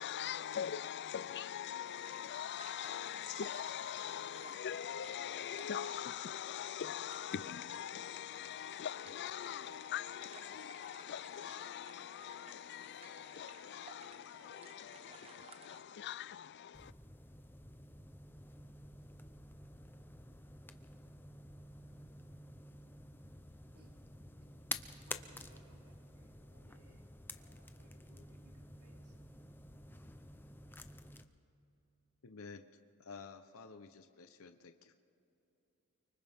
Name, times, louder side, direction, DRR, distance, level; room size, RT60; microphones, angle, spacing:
voice 1, 0.0-16.9, left 9 dB, 50° left, 0.4 m, -42 dB
sound 1, 1.8-15.8, right 3 dB, 25° right, 1.0 m, -58 dB
sound 2, 16.7-31.3, left 2 dB, 10° left, 0.7 m, -50 dB
voice 2, 25.1-27.0 27.3-29.3, right 1 dB, 80° right, 2.7 m, -67 dB
voice 3, 32.2-34.9, left 4 dB, 65° left, 0.8 m, -52 dB
30.0 x 24.5 x 3.6 m
head